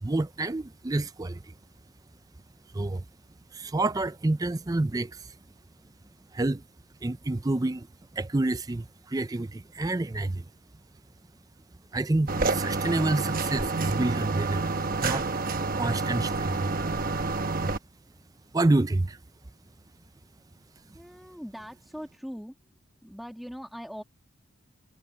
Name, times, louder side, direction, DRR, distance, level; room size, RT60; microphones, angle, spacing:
voice 1, 0.0-1.5 2.7-3.0 3.5-5.3 6.3-6.6 7.0-7.9 8.1-10.4 11.9-14.6 15.0-15.3 15.8-16.7 17.5-17.7 18.5-19.2, right 2 dB, 15° right, 0.4 m, -28 dB
sound 1, 12.3-17.8, right 3 dB, 40° right, 1.1 m, -28 dB
voice 2, 20.9-22.6 23.0-24.0, equal, ahead, 2.3 m, -41 dB
head